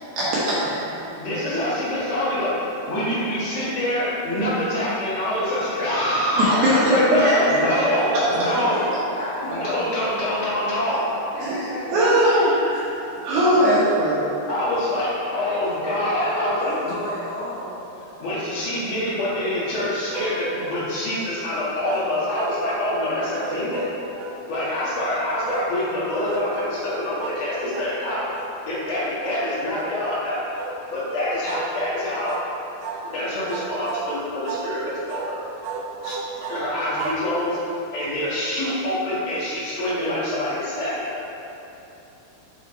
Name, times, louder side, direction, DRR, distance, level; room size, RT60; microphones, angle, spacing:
voice 1, 0.2-0.8 6.4-7.6 8.4-8.5 11.4-11.6 11.9-12.8 13.2-14.3, equal, 70° right, -10 dB, 2.4 m, -19 dB
voice 2, 1.2-8.8 9.4-11.1 14.5-17.0 18.2-23.9 24.5-28.2 28.6-32.4 33.0-35.4 36.0-37.6 37.9-41.3, left 1 dB, 55° left, -9 dB, 1.9 m, -25 dB
voice 3, 8.3-8.9 9.2-9.5 9.9-10.0 11.3-13.6 16.0-17.8, left 1 dB, 80° left, -8 dB, 3.5 m, -34 dB
sound 1, 20.1-20.9 21.9-22.9 23.4-24.4 25.5-25.7 26.2-26.5 27.2-27.5 27.7-28.0 28.3-28.6 29.2-29.4 29.7-30.0 30.5-30.8 31.4-31.7 32.2-32.5 32.8-33.1 33.5-34.1 34.4-34.7 35.1-35.3 35.6-37.8, right 4 dB, 90° right, 2.3 m, -33 dB
7.6 x 3.4 x 4.2 m, 3.0 s
omnidirectional pair, 5.1 m